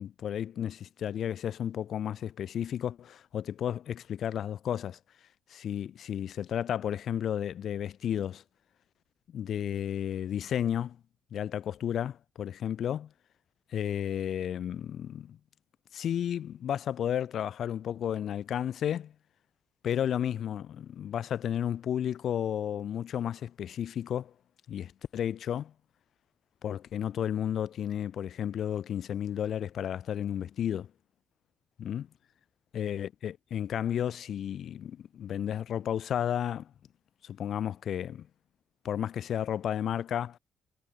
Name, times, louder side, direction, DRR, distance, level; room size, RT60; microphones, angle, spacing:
voice 1, 0.0-5.0 5.5-8.4 9.3-11.0 11.3-13.1 13.7-15.4 15.9-19.1 19.8-24.3 24.7-25.7 26.6-30.9 31.8-32.1 32.7-36.7 37.2-38.3 38.8-40.4, left 9 dB, 65° left, 2.6 m, -32 dB
cardioid pair, 90°, 0 cm